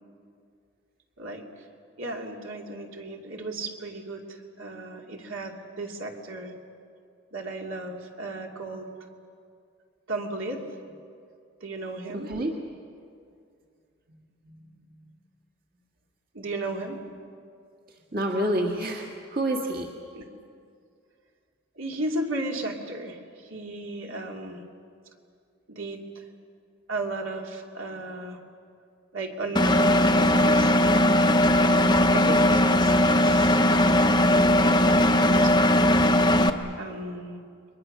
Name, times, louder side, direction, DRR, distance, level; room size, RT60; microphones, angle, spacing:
voice 1, 1.2-1.7 2.0-6.5 7.3-8.9 10.1-10.6 11.6-12.3 14.1-14.2 14.4-14.8 16.3-17.0 20.1-20.2 21.7-24.6 25.7-26.2 26.9-28.4 29.1-30.8 31.8-35.8 36.8-37.4, right 2 dB, 70° right, 1 dB, 2.7 m, -35 dB
voice 2, 12.1-12.5 18.1-19.9 31.8-32.4, right 1 dB, 45° right, 1 dB, 1.9 m, -28 dB
Engine, 29.6-36.5, left 1 dB, 20° left, 0.8 m, -19 dB
30.0 x 23.0 x 6.7 m, 2.4 s
head